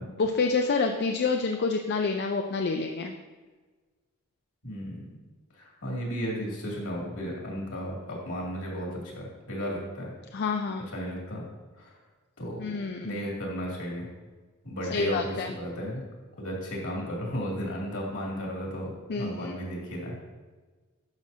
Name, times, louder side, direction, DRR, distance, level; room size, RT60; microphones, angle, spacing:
voice 1, 0.0-3.1 10.3-10.8 12.6-13.2 14.9-15.5 19.1-19.5, left 4 dB, 50° left, 4 dB, 0.4 m, -28 dB
voice 2, 4.6-5.1 5.6-10.1 10.9-11.4 11.8-11.9 12.4-12.6 13.0-14.1 14.6-16.0 16.4-20.1, equal, 70° left, -3 dB, 2.5 m, -34 dB
11.5 x 6.3 x 2.8 m, 1.3 s
head